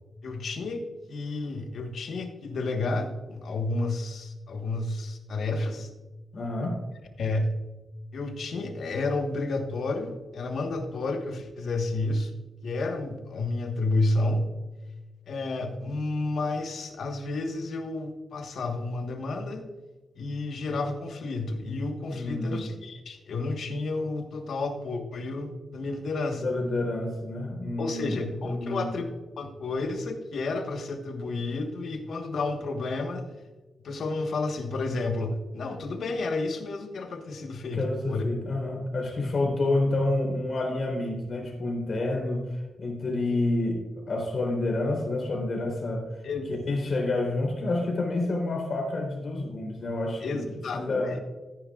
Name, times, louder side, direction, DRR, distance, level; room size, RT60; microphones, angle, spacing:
voice 1, 0.2-0.8 1.1-5.9 7.2-7.5 8.1-12.3 12.6-14.4 15.3-19.6 20.2-26.4 27.8-29.1 29.4-33.3 33.8-38.3 46.2-46.5 50.2-51.2, left 2 dB, 65° left, 5 dB, 1.4 m, -31 dB
voice 2, 6.3-6.8 22.1-22.7 26.3-28.8 37.7-46.2 46.7-50.2 50.7-51.1, left 2 dB, 40° left, 0 dB, 3.6 m, -29 dB
14.0 x 9.8 x 2.5 m, 1.2 s
wide cardioid pair, 135°, 0 cm